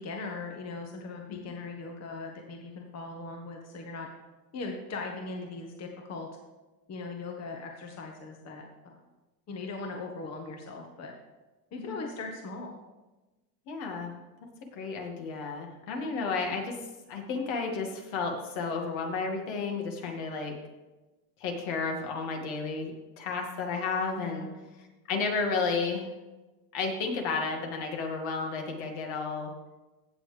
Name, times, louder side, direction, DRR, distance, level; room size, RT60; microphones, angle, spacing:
voice 1, 0.0-4.1 4.5-6.3 6.9-9.0 9.5-11.1 11.7-12.8 24.1-24.5, left 3 dB, 30° left, 2 dB, 1.4 m, -39 dB
voice 2, 13.7-14.1 14.7-16.8 17.1-20.5 21.4-22.9 23.2-24.5 25.1-26.1 26.7-29.5, left 4 dB, 60° left, 2 dB, 2.3 m, -32 dB
16.0 x 7.1 x 3.5 m, 1.1 s
supercardioid pair, 110°, 49 cm